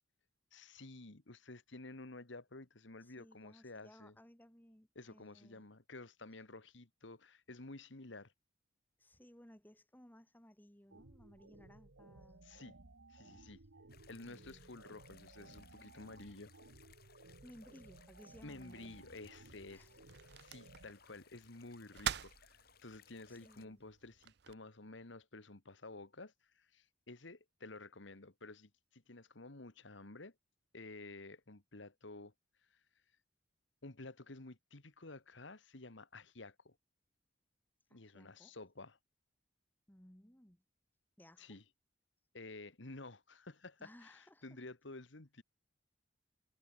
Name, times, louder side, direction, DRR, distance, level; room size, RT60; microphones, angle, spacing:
voice 1, 0.5-4.1 4.9-8.3 12.4-12.7 13.1-13.6 14.1-16.5 18.4-19.9 20.4-30.3 30.7-32.3 32.7-32.8 33.8-36.8 37.9-39.0 41.4-41.6 42.3-45.4, left 2 dB, 75° left, 1.8 m, -52 dB
voice 2, 3.0-5.6 9.0-12.4 14.2-14.7 17.4-19.0 19.7-20.0 23.3-23.8 37.9-38.5 39.9-40.6 41.2-41.6 43.8-44.6, equal, 10° left, 1.6 m, -61 dB
sound 1, 10.9-20.9, right 2 dB, 85° right, 1.5 m, -59 dB
sound 2, 13.9-23.7, left 7 dB, 50° left, 5.1 m, -65 dB
sound 3, 18.5-24.5, right 9 dB, 55° right, 0.6 m, -47 dB
head